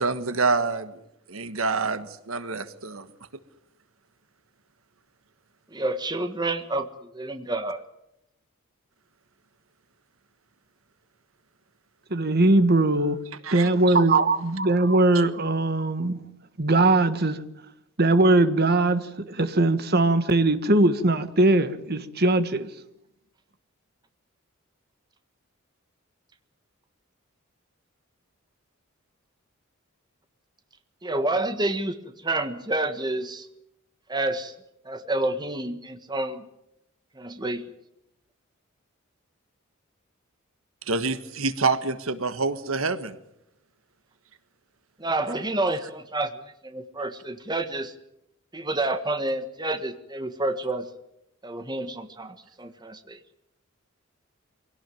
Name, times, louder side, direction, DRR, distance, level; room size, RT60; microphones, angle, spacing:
voice 1, 0.0-1.0 1.3-3.1 13.4-13.7 40.9-43.2, right 4 dB, 75° right, 1.5 m, -27 dB
voice 2, 5.7-7.8 31.0-32.0 32.2-33.5 34.1-34.5 34.8-36.4 37.2-37.6 45.0-47.9 48.5-50.9 51.4-53.2, right 2 dB, 20° right, 1.5 m, -29 dB
voice 3, 12.1-13.2 13.5-16.2 16.6-17.4 18.0-22.7, right 2 dB, 50° right, 1.7 m, -20 dB
24.5 x 17.5 x 9.3 m
head